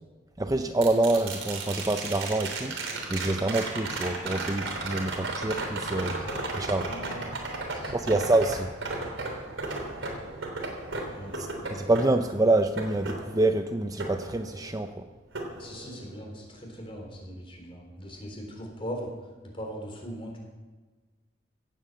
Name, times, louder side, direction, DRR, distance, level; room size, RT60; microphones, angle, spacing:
voice 1, 0.4-2.8 3.1-6.2 6.6-6.9 7.9-8.7 11.4-15.0, right 2 dB, 20° right, 7 dB, 0.6 m, -26 dB
sound 1, 0.8-14.9 15.3-16.4 18.6-18.7, right 2 dB, 85° right, 3.4 m, -35 dB
voice 2, 5.9-6.5 6.9-7.2 7.7-8.2 11.1-11.4 15.6-19.1 19.4-20.4, equal, 30° left, 0 dB, 3.9 m, -40 dB
17.0 x 8.9 x 7.7 m, 1.3 s
head